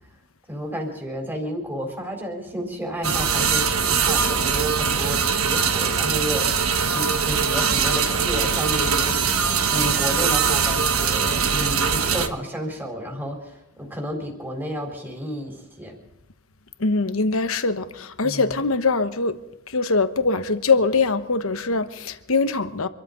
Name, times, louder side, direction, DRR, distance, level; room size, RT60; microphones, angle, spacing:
voice 1, 0.5-9.4 9.7-15.9 18.2-18.6, equal, 10° right, 3.9 m, -31 dB
sound 1, 3.0-12.3, right 6 dB, 75° right, 1.3 m, -22 dB
voice 2, 16.8-19.4 19.7-22.9, left 3 dB, 70° left, 1.1 m, -22 dB
26.0 x 13.5 x 3.9 m
head